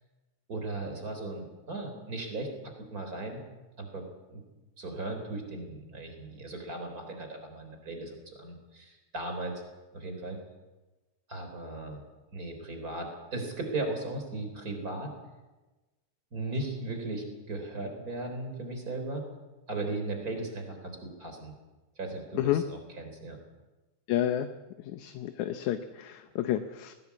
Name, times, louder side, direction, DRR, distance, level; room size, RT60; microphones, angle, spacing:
voice 1, 0.5-3.4 3.8-4.4 4.8-9.6 9.9-10.4 11.3-12.0 12.3-15.1 16.3-19.2 19.7-21.5 22.0-23.4, right 2 dB, 30° right, 5 dB, 4.2 m, -37 dB
voice 2, 24.1-24.5 24.9-26.9, left 12 dB, 75° left, 8 dB, 2.2 m, -30 dB
20.0 x 17.0 x 8.4 m, 1.1 s
omnidirectional pair, 3.5 m